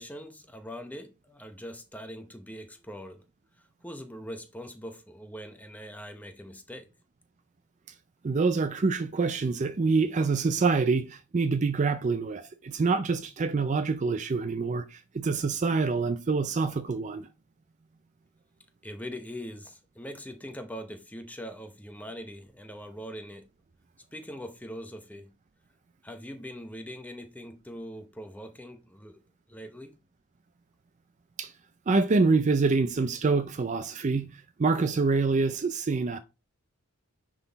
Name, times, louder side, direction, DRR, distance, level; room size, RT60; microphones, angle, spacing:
voice 1, 0.0-3.2 3.8-6.9 18.8-23.5 24.1-25.3 26.0-29.2 29.5-30.0, equal, 5° left, 0.8 m, -42 dB
voice 2, 8.2-17.3 31.4-31.5 31.9-36.2, right 4 dB, 35° right, 0.4 m, -26 dB
9.8 x 3.9 x 4.0 m
head